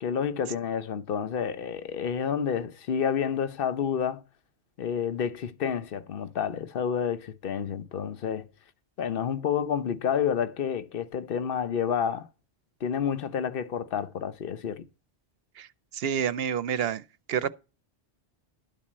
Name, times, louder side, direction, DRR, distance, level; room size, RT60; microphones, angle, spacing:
voice 1, 0.0-4.2 4.8-8.5 9.0-12.3 12.8-14.9, left 7 dB, 60° left, 1.0 m, -29 dB
voice 2, 15.9-17.0 17.3-17.5, right 8 dB, 70° right, 0.9 m, -28 dB
12.0 x 4.1 x 7.3 m
omnidirectional pair, 1.1 m